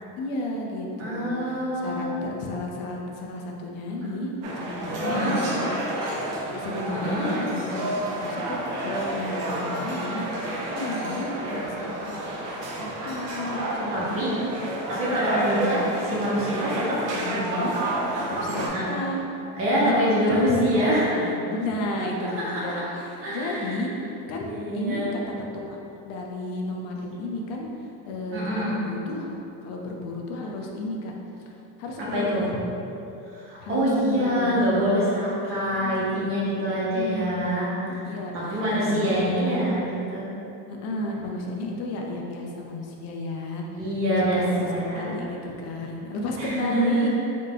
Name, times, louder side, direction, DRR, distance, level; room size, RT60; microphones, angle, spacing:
voice 1, 0.2-5.7 6.3-7.9 8.2-10.2 10.7-12.3 12.8-14.5 16.0-16.2 17.0-17.8 18.4-19.2 19.8-20.2 20.7-24.4 24.7-25.8 26.1-27.7 28.0-29.4 29.6-31.1 31.8-32.6 33.6-34.6 35.8-36.2 36.9-37.5 37.9-39.7 40.7-43.6 44.3-47.1, left 2 dB, 45° left, 0 dB, 0.5 m, -33 dB
voice 2, 1.0-2.1 4.9-5.4 6.9-7.3 13.9-14.3 14.9-17.0 18.7-18.9 19.5-21.1 22.0-22.6 23.2-23.8 24.5-25.1 28.3-28.8 32.1-32.5 33.3-38.0 38.3-40.3 43.8-45.1 46.4-47.1, equal, 35° right, -8 dB, 1.1 m, -25 dB
sound 1, 4.4-18.7, right 1 dB, 60° right, 0.8 m, -30 dB
3.7 x 2.8 x 3.7 m, 2.9 s
cardioid pair, 170°, 36 cm